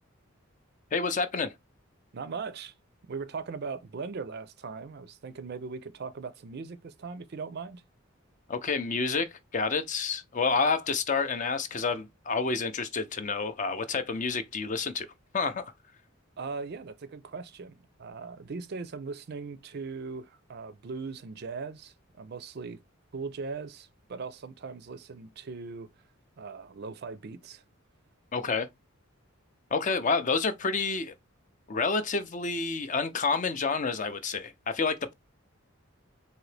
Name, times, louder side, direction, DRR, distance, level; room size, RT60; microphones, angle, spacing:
voice 1, 0.9-1.5 8.5-15.1 15.3-15.7 28.3-28.7 29.7-31.1 31.7-35.1, left 4 dB, 35° left, 0.5 m, -29 dB
voice 2, 2.1-2.7 3.1-7.8 16.4-22.8 23.1-25.9 26.4-27.6, right 4 dB, 50° right, 0.4 m, -39 dB
3.9 x 2.8 x 3.2 m
head